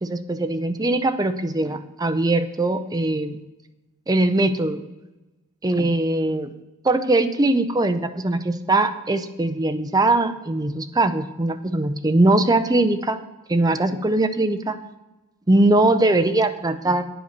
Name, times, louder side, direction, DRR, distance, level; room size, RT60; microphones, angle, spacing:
voice 1, 0.0-3.4 4.1-4.8 5.6-6.5 6.8-13.2 13.5-14.8 15.5-17.1, right 2 dB, 15° right, 9 dB, 0.5 m, -21 dB
9.3 x 7.9 x 6.5 m, 1.0 s
head